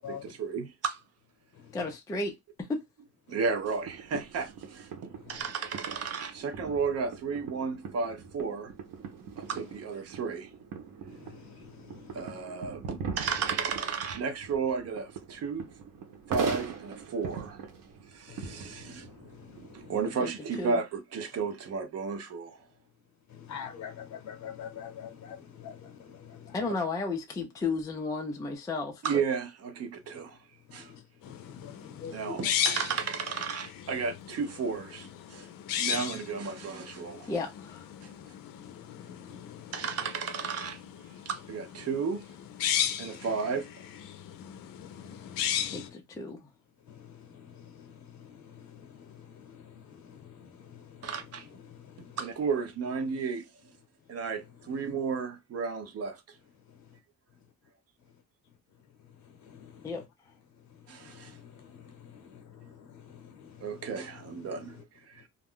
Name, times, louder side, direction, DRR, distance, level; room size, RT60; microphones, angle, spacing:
voice 1, 0.1-1.0 3.3-8.7 9.4-10.5 12.1-15.7 16.3-17.6 18.1-19.1 19.7-22.6 29.0-30.4 30.7-30.9 32.1-35.5 35.8-37.3 38.0-38.1 39.7-40.8 41.3-42.3 43.0-43.7 51.0-51.5 52.2-53.5 54.1-56.2 60.9-61.4 63.6-65.3, right 5 dB, 50° right, 0.5 m, -33 dB
voice 2, 1.7-2.8 20.2-20.3 20.6-20.8 26.5-29.2 37.3-37.9 45.7-46.4 59.8-60.0, left 3 dB, 10° left, 0.4 m, -33 dB
sound 1, 3.6-20.0, right 6 dB, 85° right, 0.8 m, -41 dB
voice 3, 11.1-12.4 18.3-19.9 23.3-26.6 30.7-32.8 38.6-39.7 44.8-45.9 46.9-51.1 51.7-52.2 59.4-60.0 61.0-63.9 64.6-64.7, left 7 dB, 60° left, 0.8 m, -47 dB
sound 2, 31.2-45.9, left 9 dB, 90° left, 0.5 m, -36 dB
2.4 x 2.2 x 3.5 m
cardioid pair, 165°, 33 cm